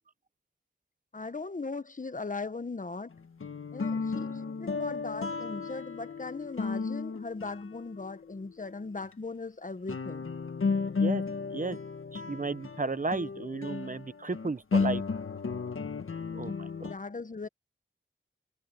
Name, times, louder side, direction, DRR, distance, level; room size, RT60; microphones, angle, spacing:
voice 1, 1.1-3.1 3.7-10.3 16.8-17.5, left 3 dB, 40° left, 1.1 m, -39 dB
sound 1, 3.1-8.4 9.0-9.1 9.9-16.9, left 4 dB, 80° left, 1.6 m, -34 dB
voice 2, 12.1-15.0 16.3-16.9, right 3 dB, 40° right, 0.9 m, -34 dB
wide cardioid pair, 75°, 21 cm